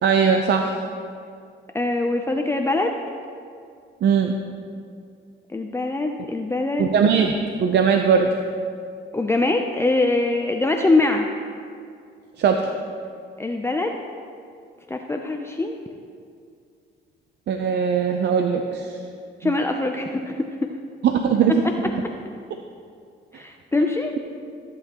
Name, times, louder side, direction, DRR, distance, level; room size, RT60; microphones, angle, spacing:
voice 1, 0.0-0.7 4.0-4.3 6.8-8.3 12.4-12.7 17.5-18.9 19.4-19.5 21.0-21.6, right 6 dB, 60° right, 5 dB, 0.6 m, -19 dB
voice 2, 1.7-3.0 5.5-6.9 9.1-11.3 13.4-14.0 14.9-15.8 19.4-20.7 23.3-24.1, left 2 dB, 15° left, 3 dB, 0.5 m, -23 dB
14.5 x 7.9 x 3.0 m, 2.3 s
cardioid pair, 90°, 20 cm